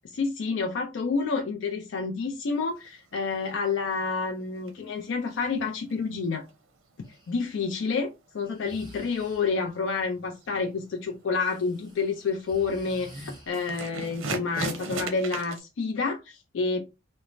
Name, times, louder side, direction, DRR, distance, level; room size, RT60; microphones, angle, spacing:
voice 1, 0.0-6.4 7.3-16.8, left 4 dB, 65° left, 0.4 m, -29 dB
sound 1, 2.5-6.8 7.0-15.6, right 4 dB, 85° right, 0.6 m, -39 dB
Breathing, 7.0-7.3 8.4-9.7 11.4-14.1, equal, 20° right, 1.1 m, -49 dB
3.0 x 2.0 x 2.4 m
head